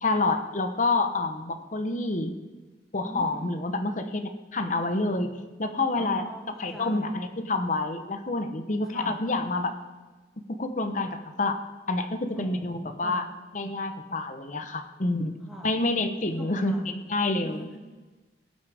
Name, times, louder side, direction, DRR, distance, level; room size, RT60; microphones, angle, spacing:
voice 1, 0.0-2.3 2.9-6.3 6.6-9.8 10.6-11.6 11.9-13.3 13.5-15.3 15.6-17.7, left 2 dB, 45° left, 7 dB, 1.0 m, -28 dB
voice 2, 3.0-3.6 6.0-7.2 8.9-9.2 12.3-13.3 15.5-15.7 16.2-17.0 17.3-17.8, equal, 5° right, -3 dB, 2.2 m, -42 dB
18.5 x 8.6 x 3.5 m, 1.3 s
head